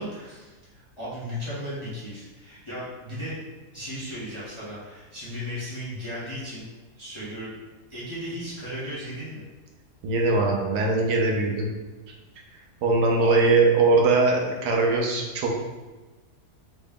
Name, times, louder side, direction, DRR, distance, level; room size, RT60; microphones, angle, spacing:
voice 1, 0.0-3.4 3.7-6.6 7.0-7.5 7.9-9.4 13.2-13.5, equal, 25° left, -10 dB, 0.7 m, -35 dB
voice 2, 10.0-11.7 12.8-15.6, right 3 dB, 85° right, 0 dB, 1.2 m, -21 dB
3.9 x 2.1 x 3.5 m, 1.2 s
omnidirectional pair, 1.7 m